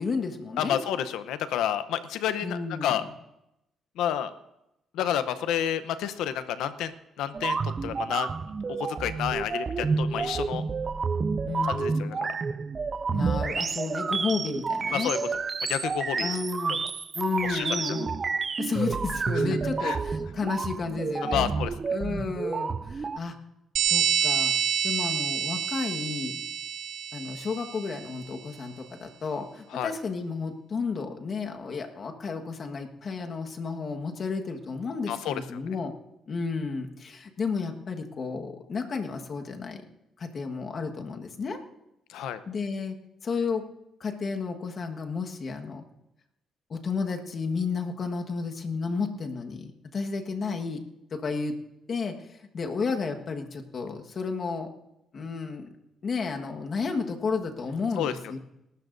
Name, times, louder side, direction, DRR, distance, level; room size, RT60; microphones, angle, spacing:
voice 1, 0.0-0.8 2.4-3.0 11.4-12.0 13.1-15.1 16.2-16.8 17.1-18.1 18.6-21.5 21.9-23.4 23.9-24.5 24.8-26.4 27.1-35.9 36.3-39.8 40.2-41.6 42.5-42.9 43.2-43.7 44.0-45.8 46.7-50.8 51.1-51.5 51.9-54.7 55.1-55.7 56.0-58.4, left 4 dB, 50° left, 4 dB, 1.5 m, -32 dB
voice 2, 0.6-3.0 4.0-4.3 4.9-8.3 8.7-10.6 11.6-12.2 14.9-15.2 15.7-16.3 16.7-16.8 17.4-17.7 19.3-19.5 19.8-20.0 21.2-21.7 29.7-29.9 35.1-35.4 42.1-42.4 58.0-58.1, left 10 dB, 90° left, 12 dB, 0.8 m, -30 dB
sound 1, 7.3-23.2, right 5 dB, 40° right, 0.4 m, -30 dB
sound 2, 23.8-28.0, right 8 dB, 80° right, 0.8 m, -28 dB
28.5 x 12.5 x 2.6 m, 0.89 s
cardioid pair, 90°, 0 cm